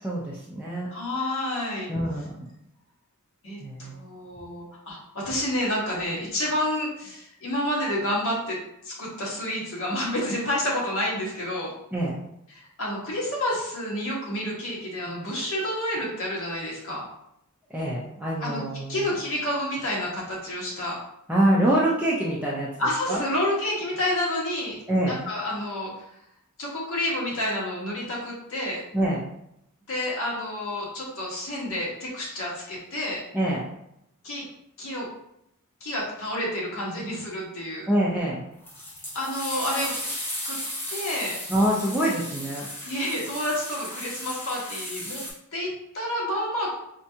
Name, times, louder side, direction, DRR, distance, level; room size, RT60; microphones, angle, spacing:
voice 1, 0.0-0.9 1.9-2.5 3.6-4.0 11.9-12.2 17.7-19.0 21.3-22.7 23.1-23.2 24.9-25.1 28.9-29.2 33.3-33.7 37.9-38.4 41.5-42.7, right 1 dB, 5° right, -7 dB, 0.5 m, -25 dB
voice 2, 0.9-1.9 3.4-8.6 8.8-11.7 12.5-17.0 18.4-18.6 18.9-21.0 22.8-24.8 25.1-26.0 26.6-28.8 29.9-33.2 34.2-34.5 34.8-35.1 35.8-37.9 39.1-40.0 40.4-40.6 40.9-41.4 42.8-45.2 45.5-46.8, left 1 dB, 65° left, -4 dB, 1.2 m, -29 dB
sound 1, 38.7-45.3, left 1 dB, 10° left, 0.9 m, -35 dB
4.3 x 2.4 x 2.7 m, 0.78 s
head